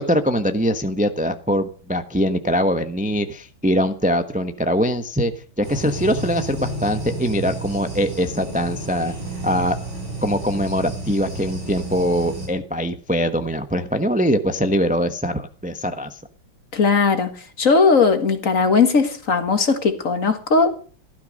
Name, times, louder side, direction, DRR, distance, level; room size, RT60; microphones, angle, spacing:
voice 1, 0.0-5.3 5.6-9.1 9.4-9.8 10.2-16.2, equal, 5° right, 9 dB, 0.7 m, -22 dB
sound 1, 5.6-12.5, right 2 dB, 85° right, 7.8 m, -31 dB
voice 2, 16.7-17.3 17.6-20.7, left 4 dB, 45° left, 9 dB, 2.0 m, -18 dB
15.5 x 13.0 x 6.5 m, 0.42 s
omnidirectional pair, 2.1 m